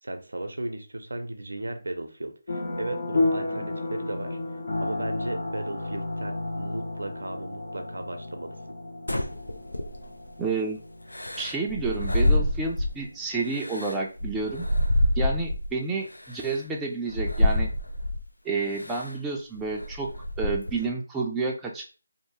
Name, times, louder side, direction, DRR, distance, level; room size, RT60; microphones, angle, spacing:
voice 1, 0.0-4.4 4.8-8.6, right 2 dB, 75° right, 6 dB, 0.5 m, -35 dB
sound 1, 2.5-13.2, left 2 dB, 55° left, 0.8 m, -32 dB
sound 2, 9.1-10.3 11.1-13.0 13.5-15.7 16.4-16.5 17.1-18.2 18.8-19.1 19.5-20.9, left 1 dB, 85° left, 0.4 m, -26 dB
voice 2, 10.4-10.8 11.4-14.7 15.2-17.7 18.4-20.1 20.4-21.8, right 3 dB, 10° right, -2 dB, 0.3 m, -30 dB
2.7 x 2.1 x 3.0 m, 0.35 s
figure-of-eight pair, 155°, 0 cm